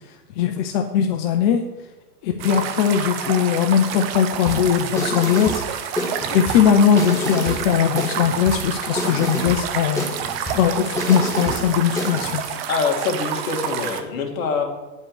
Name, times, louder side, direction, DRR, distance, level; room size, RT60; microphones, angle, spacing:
voice 1, 0.4-1.6 2.2-5.6 6.3-12.4, left 8 dB, 30° left, 4 dB, 0.6 m, -20 dB
sound 1, 2.4-14.0, right 9 dB, 40° right, 0.8 m, -29 dB
sound 2, 4.5-12.5, left 1 dB, 5° left, 1.4 m, -29 dB
voice 2, 12.7-14.6, left 5 dB, 60° left, 2 dB, 2.2 m, -24 dB
9.5 x 5.4 x 6.4 m, 1.2 s
hypercardioid pair, 130°, 48 cm